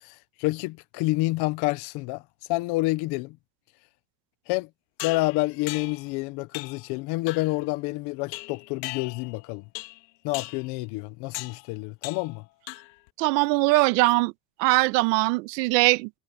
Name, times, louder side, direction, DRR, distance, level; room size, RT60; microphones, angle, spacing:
voice 1, 0.0-2.2 2.5-3.4 4.5-4.7 5.0-9.6 10.2-12.4, left 21 dB, 55° left, 0.9 m, -28 dB
sound 1, 5.0-6.1 6.5-6.9 7.3-7.6 8.3-9.4 9.8-10.1 10.3-10.7 11.3-11.6 12.0-12.4 12.7-13.1, left 22 dB, 90° left, 1.7 m, -38 dB
voice 2, 13.2-14.3 14.6-16.1, right 23 dB, 85° right, 1.2 m, -21 dB
cardioid pair, 160°, 49 cm